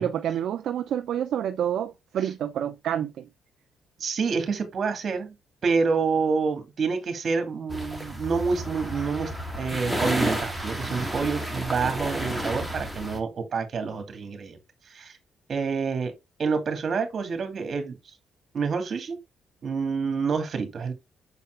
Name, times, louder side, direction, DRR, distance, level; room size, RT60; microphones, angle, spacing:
voice 1, 0.0-3.3, right 10 dB, 70° right, 0.6 m, -28 dB
voice 2, 4.0-5.3 5.6-9.3 9.6-14.6 14.9-15.1 15.5-16.1 16.4-18.0 18.5-19.2 19.6-20.9, right 5 dB, 50° right, 2.3 m, -27 dB
sound 1, 7.7-13.2, right 1 dB, ahead, 1.9 m, -31 dB
7.1 x 4.2 x 3.3 m
cardioid pair, 90°, 0 cm